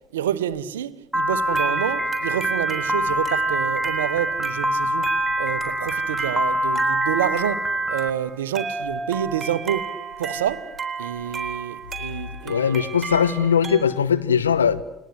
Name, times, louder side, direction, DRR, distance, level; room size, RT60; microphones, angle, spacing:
voice 1, 0.1-5.1 5.4-9.9 10.2-10.7 11.0-12.7, right 10 dB, 80° right, 1.0 m, -28 dB
Piano, 1.1-8.1, equal, 5° right, 2.1 m, -24 dB
sound 1, 1.5-13.8, right 5 dB, 30° right, 3.8 m, -34 dB
voice 2, 12.4-14.8, left 7 dB, 90° left, 1.0 m, -20 dB
29.0 x 22.0 x 8.0 m
hypercardioid pair, 60°, 0 cm